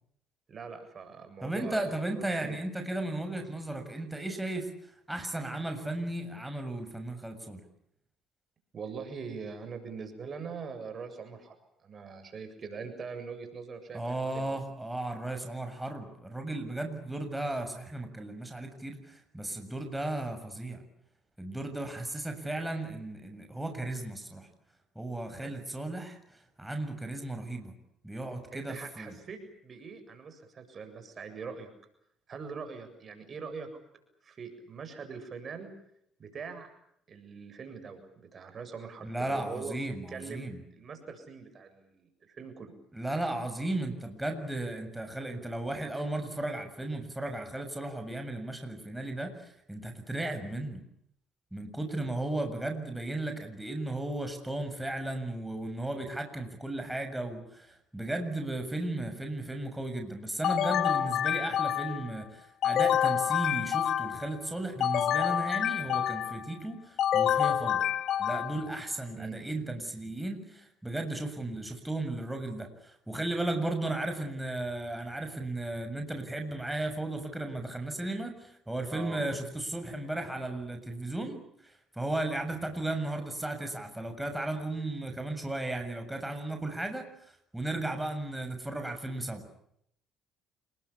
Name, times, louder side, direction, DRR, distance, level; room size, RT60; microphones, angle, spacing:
voice 1, 0.5-1.8 2.2-2.3 8.7-11.5 11.8-14.5 25.3-25.5 28.5-31.7 32.3-33.7 34.2-35.7 36.2-36.7 37.1-39.8 40.1-42.7 69.1-69.4 78.9-79.3, right 5 dB, 45° right, 8 dB, 7.6 m, -42 dB
voice 2, 1.4-4.7 5.1-7.6 13.9-20.8 21.4-24.5 25.0-26.2 26.6-27.7 28.0-29.1 39.0-40.6 42.9-50.8 51.5-67.8 68.2-81.4 81.9-87.1 87.5-89.4, right 2 dB, 10° right, 5 dB, 7.0 m, -35 dB
sound 1, 60.4-62.1 62.6-64.3 64.8-66.4 67.0-68.7, left 10 dB, 65° left, 1.7 m, -28 dB
29.0 x 22.0 x 8.6 m, 0.73 s
supercardioid pair, 70°, 0 cm